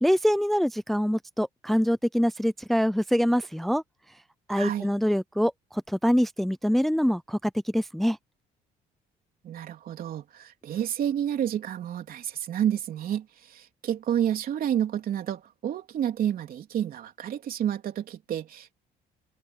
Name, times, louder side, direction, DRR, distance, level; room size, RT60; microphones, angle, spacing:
voice 1, 0.0-3.8 4.5-8.2, equal, ahead, 0.5 m, -25 dB
voice 2, 4.5-4.9 9.4-18.8, right 10 dB, 60° right, 3.4 m, -30 dB
cardioid pair, 110°, 17 cm